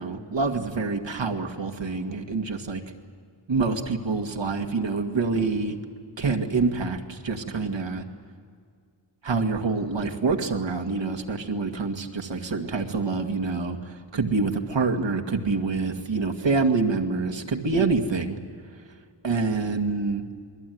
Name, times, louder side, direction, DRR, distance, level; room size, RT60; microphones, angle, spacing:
voice 1, 0.0-2.8 3.5-5.8 6.2-8.0 9.2-18.4 19.2-20.2, right 4 dB, 70° right, 4 dB, 2.0 m, -26 dB
28.0 x 21.5 x 9.4 m, 2.1 s
wide cardioid pair, 110°, 46 cm